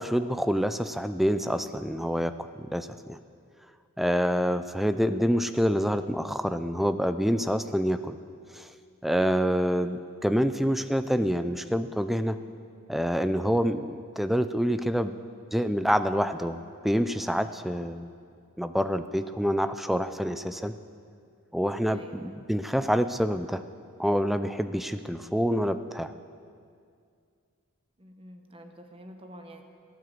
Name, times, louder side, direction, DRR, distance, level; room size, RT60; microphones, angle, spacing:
voice 1, 0.0-2.3 2.6-3.2 4.0-8.2 8.5-8.7 9.0-12.4 12.9-15.1 15.5-18.1 18.6-20.7 21.5-23.6 24.0-26.1, equal, ahead, 10 dB, 0.4 m, -27 dB
voice 2, 21.9-22.4 28.0-29.6, right 1 dB, 25° right, 4 dB, 1.2 m, -47 dB
16.5 x 9.6 x 7.8 m, 2.3 s
head